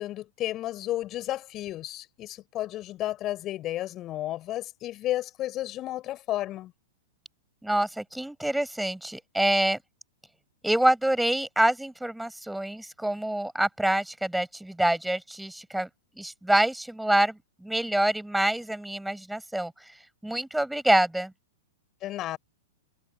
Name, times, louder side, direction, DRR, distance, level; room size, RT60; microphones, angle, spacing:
voice 1, 0.0-6.7 22.0-22.4, left 14 dB, 35° left, 4.4 m, -32 dB
voice 2, 7.6-9.8 10.6-15.9 16.2-19.9 20.2-21.3, right 1 dB, 5° right, 7.9 m, -26 dB
hypercardioid pair, 105°, 0 cm